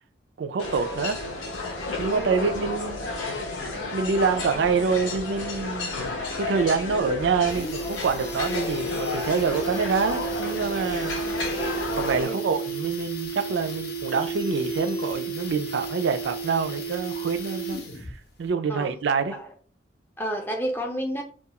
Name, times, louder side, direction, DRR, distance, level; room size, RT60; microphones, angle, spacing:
voice 1, 0.4-1.2 2.0-3.0 3.9-6.0 6.3-11.2 11.9-17.8 18.4-19.3, right 5 dB, 70° right, 0.4 m, -26 dB
sound 1, 0.6-12.3, left 2 dB, 90° left, 0.7 m, -32 dB
voice 2, 2.1-2.4 12.2-12.6 18.7-18.9 19.3-19.5 20.2-21.2, equal, 10° left, 0.4 m, -31 dB
sound 2, 6.6-6.7 7.0-7.1 7.3-18.2 18.4-18.5, right 3 dB, 55° left, 0.6 m, -32 dB
2.3 x 2.3 x 2.8 m
head